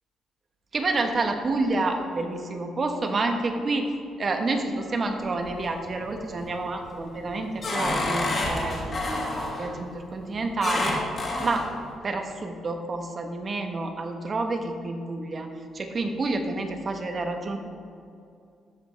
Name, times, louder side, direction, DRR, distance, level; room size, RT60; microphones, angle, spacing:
voice 1, 0.7-11.0 11.4-11.6 12.0-15.5 15.7-17.6, right 2 dB, 40° right, 5 dB, 1.2 m, -29 dB
sound 1, 5.2-5.8 6.3-6.7 7.1-9.7 10.6-11.7, left 2 dB, 45° left, 2.3 m, -28 dB
14.0 x 5.3 x 4.5 m, 2.5 s
cardioid pair, 90°, 0 cm